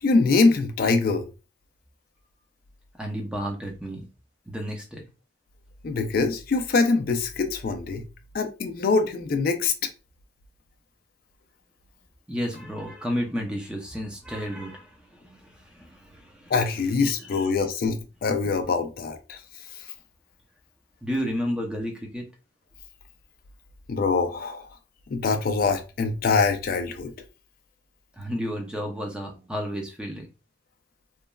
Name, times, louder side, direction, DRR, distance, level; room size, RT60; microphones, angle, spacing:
voice 1, 0.0-1.3 5.8-8.0 8.3-9.7 16.5-19.4 23.9-24.7 25.1-27.1, left 4 dB, 50° left, 0.4 m, -24 dB
voice 2, 3.0-4.1 4.5-5.1 12.3-16.5 17.0-17.5 21.0-22.2 28.2-30.3, equal, 5° right, 0.5 m, -32 dB
3.0 x 2.3 x 2.2 m
head